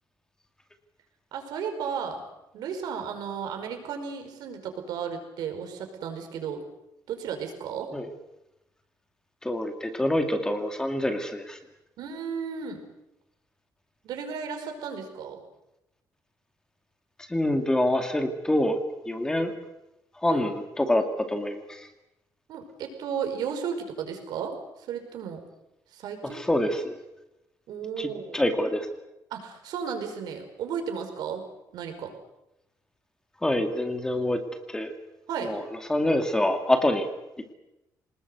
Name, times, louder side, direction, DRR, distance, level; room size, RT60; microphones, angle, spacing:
voice 1, 1.3-2.2 2.5-6.6 7.1-7.9 12.0-12.8 14.0-15.4 20.3-20.5 22.5-24.5 24.9-25.4 25.9-26.4 27.7-28.4 29.3-31.4 31.7-32.1 35.3-35.5, right 7 dB, 85° right, 5 dB, 5.2 m, -34 dB
voice 2, 9.4-11.6 17.3-18.8 19.1-19.5 20.2-21.9 26.2-27.0 28.0-28.9 33.4-34.4 34.7-34.9 35.4-37.1, left 1 dB, 10° left, 6 dB, 2.2 m, -26 dB
25.5 x 20.0 x 8.1 m, 0.92 s
cardioid pair, 160°, 7 cm